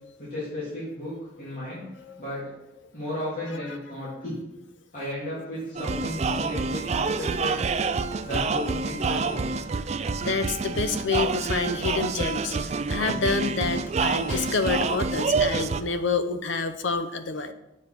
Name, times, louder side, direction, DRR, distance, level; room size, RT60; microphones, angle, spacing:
voice 1, 0.2-1.9 2.2-2.5 2.9-4.4 4.9-7.6 8.2-9.5, left 1 dB, 45° left, -9 dB, 2.8 m, -34 dB
sound 1, 5.8-15.8, right 4 dB, 35° right, 0.4 m, -27 dB
voice 2, 10.2-17.5, left 4 dB, 75° left, 10 dB, 0.7 m, -28 dB
7.4 x 5.1 x 5.9 m, 0.91 s
head